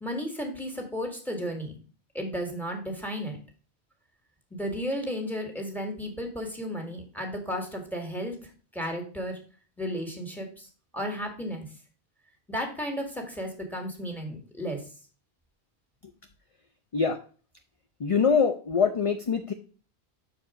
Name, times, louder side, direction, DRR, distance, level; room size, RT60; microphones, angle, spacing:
voice 1, 0.0-1.7 2.1-3.4 4.5-8.3 8.7-9.4 9.8-10.7 10.9-11.7 12.5-14.8, equal, ahead, 3 dB, 2.0 m, -33 dB
voice 2, 18.0-19.5, left 6 dB, 40° left, 6 dB, 0.5 m, -24 dB
6.8 x 4.8 x 4.9 m, 0.38 s
omnidirectional pair, 1.1 m